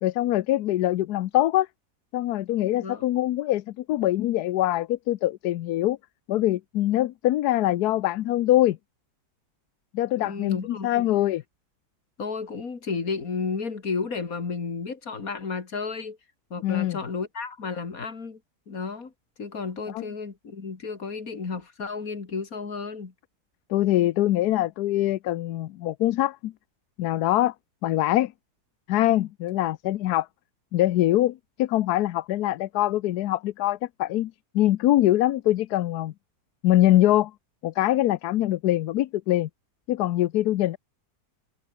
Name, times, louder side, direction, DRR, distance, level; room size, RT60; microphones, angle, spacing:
voice 1, 0.0-1.7 2.1-6.0 6.3-8.8 9.9-11.4 16.6-17.0 19.9-20.0 23.7-26.5 27.0-27.5 27.8-28.3 28.9-30.3 30.7-36.1 36.6-37.3 37.6-39.5 39.9-40.8, left 14 dB, 75° left, 1.2 m, -23 dB
voice 2, 10.2-11.1 12.2-16.2 16.5-18.4 18.7-19.1 19.4-23.1, left 4 dB, 60° left, 2.9 m, -32 dB
omnidirectional pair, 1.7 m